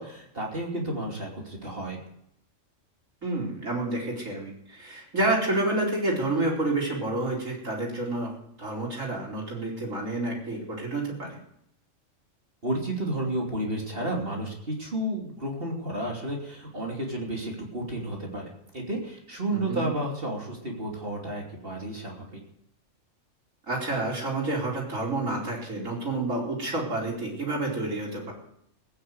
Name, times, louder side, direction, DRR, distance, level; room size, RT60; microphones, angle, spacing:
voice 1, 0.0-2.0 12.6-18.5 18.7-22.4, right 1 dB, 45° right, -1 dB, 3.2 m, -32 dB
voice 2, 3.2-8.3 8.6-11.4 19.5-19.9 23.7-28.3, right 2 dB, 85° right, -2 dB, 4.9 m, -29 dB
18.0 x 9.9 x 7.9 m, 0.74 s
omnidirectional pair, 1.3 m